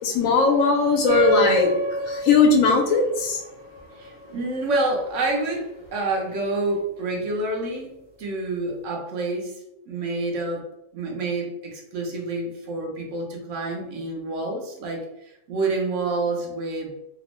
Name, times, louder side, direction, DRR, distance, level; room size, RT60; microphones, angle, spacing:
voice 1, 0.0-1.7 2.1-3.4, left 4 dB, 75° left, 1 dB, 1.0 m, -19 dB
sound 1, 1.1-6.0, right 1 dB, 45° right, 0.7 m, -29 dB
voice 2, 3.9-7.9 8.2-9.5 9.9-10.7 10.9-16.9, right 2 dB, 70° right, 0 dB, 1.0 m, -28 dB
2.9 x 2.0 x 2.9 m, 0.86 s
omnidirectional pair, 1.4 m